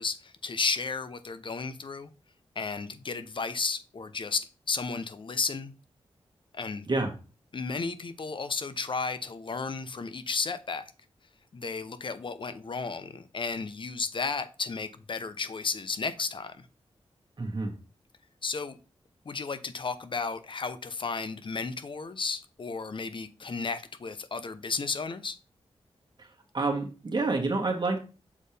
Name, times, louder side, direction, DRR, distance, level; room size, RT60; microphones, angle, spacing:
voice 1, 0.0-2.1 2.6-5.7 6.5-6.9 7.5-10.8 11.5-16.7 18.4-18.8 19.2-25.4, left 4 dB, 50° left, 0.8 m, -33 dB
voice 2, 17.4-17.7 26.2-26.3 26.5-28.0, right 3 dB, 45° right, 1.7 m, -28 dB
7.2 x 4.4 x 3.4 m
cardioid pair, 60°, 11 cm